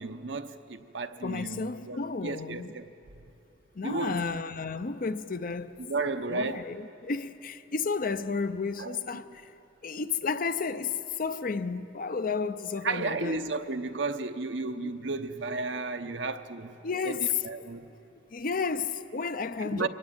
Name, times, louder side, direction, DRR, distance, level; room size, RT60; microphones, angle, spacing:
voice 1, 0.0-2.9 3.8-4.2 5.8-6.7 8.8-9.2 12.8-16.7 17.0-17.9 19.7-19.9, right 3 dB, 70° right, 0.9 m, -33 dB
voice 2, 1.2-2.7 3.8-5.8 6.3-9.5 9.8-13.5 14.8-14.9 16.8-17.4 18.3-19.9, left 5 dB, 50° left, 0.7 m, -32 dB
24.0 x 18.5 x 8.9 m
head